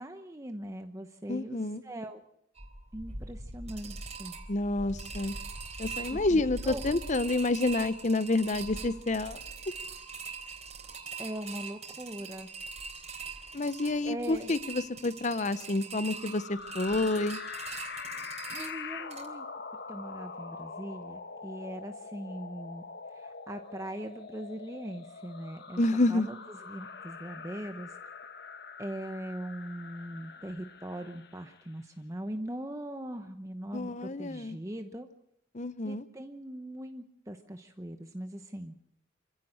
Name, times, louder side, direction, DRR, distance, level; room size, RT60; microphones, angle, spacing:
voice 1, 0.0-1.6 1.8-2.2 2.9-4.4 6.1-6.8 11.2-12.5 14.1-14.5 18.5-19.5 19.9-22.8 23.1-25.8 26.1-26.4 26.7-28.0 28.8-35.1 35.8-38.9, right 1 dB, 15° right, 6 dB, 1.0 m, -40 dB
voice 2, 1.3-1.8 4.5-5.3 5.8-9.4 13.5-17.4 25.8-26.3 33.7-34.6 35.5-36.0, left 2 dB, 40° left, 15 dB, 0.8 m, -29 dB
sound 1, 2.5-19.3, right 4 dB, 35° right, 3.8 m, -42 dB
sound 2, 16.0-31.7, left 5 dB, 55° left, 1.3 m, -44 dB
27.5 x 16.0 x 6.5 m, 0.77 s
head